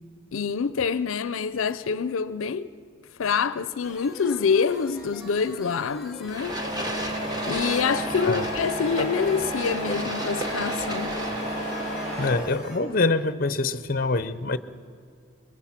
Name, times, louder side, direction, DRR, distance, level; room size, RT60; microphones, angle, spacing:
voice 1, 0.3-2.7 3.2-6.6 7.4-11.2, left 6 dB, 90° left, 0.5 m, -26 dB
sound 1, 3.8-12.8, left 1 dB, ahead, 2.6 m, -44 dB
sound 2, 6.3-11.8, right 1 dB, 20° right, 1.2 m, -35 dB
Truck, 6.4-12.3, equal, 35° right, 7.9 m, -31 dB
voice 2, 12.2-14.6, left 3 dB, 45° left, 0.6 m, -25 dB
24.5 x 22.0 x 5.8 m
head